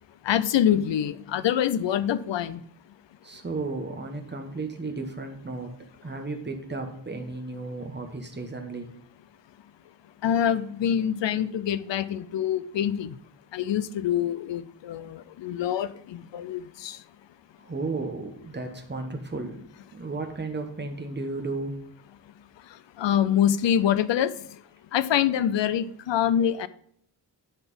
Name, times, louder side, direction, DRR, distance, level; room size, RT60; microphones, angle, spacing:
voice 1, 0.2-2.6 10.2-13.2 13.5-17.0 23.0-24.3 24.9-26.7, left 10 dB, 85° left, 16 dB, 0.6 m, -25 dB
voice 2, 3.2-5.7 6.0-8.9 17.6-19.6 19.9-21.8, right 3 dB, 25° right, 4 dB, 1.1 m, -34 dB
10.5 x 4.1 x 5.3 m, 0.68 s
wide cardioid pair, 155°, 43 cm